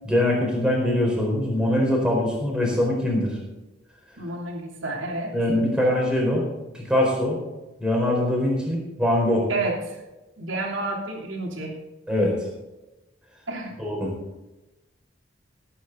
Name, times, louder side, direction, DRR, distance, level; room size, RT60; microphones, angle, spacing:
voice 1, 0.0-3.4 5.3-6.4 6.7-7.4 7.8-9.5 12.1-12.3 13.8-14.1, left 1 dB, 5° right, -2 dB, 4.4 m, -22 dB
voice 2, 4.2-5.3 9.5-10.0 10.4-11.7 13.5-13.7, right 2 dB, 75° right, 0 dB, 3.1 m, -30 dB
17.5 x 9.2 x 4.0 m, 1.0 s
head